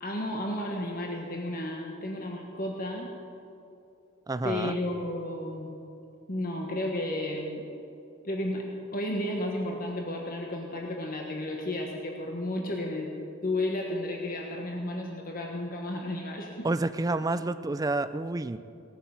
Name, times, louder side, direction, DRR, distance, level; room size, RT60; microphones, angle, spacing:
voice 1, 0.0-3.1 4.4-5.7 6.3-7.6 8.2-8.6 8.9-13.1 13.4-16.7, left 1 dB, 50° left, 0 dB, 1.4 m, -32 dB
voice 2, 4.3-4.7 16.6-18.6, right 2 dB, 20° right, 12 dB, 0.4 m, -29 dB
18.0 x 9.2 x 7.2 m, 2.7 s
head